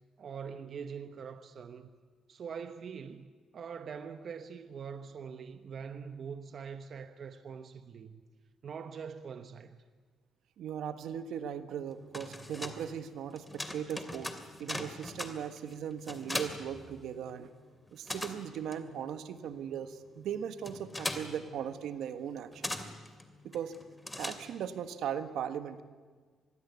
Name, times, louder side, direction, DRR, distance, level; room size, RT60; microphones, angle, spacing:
voice 1, 0.2-1.9 2.3-8.2 8.6-9.8, right 6 dB, 55° right, 1.1 m, -43 dB
voice 2, 10.6-14.3 14.6-17.5 17.9-22.7 23.4-23.8 24.2-25.8, right 8 dB, 80° right, 1.5 m, -38 dB
sound 1, 11.9-17.5 17.7-24.8, left 1 dB, 10° left, 2.7 m, -41 dB
25.5 x 21.5 x 8.3 m
cardioid pair, 90°, 0 cm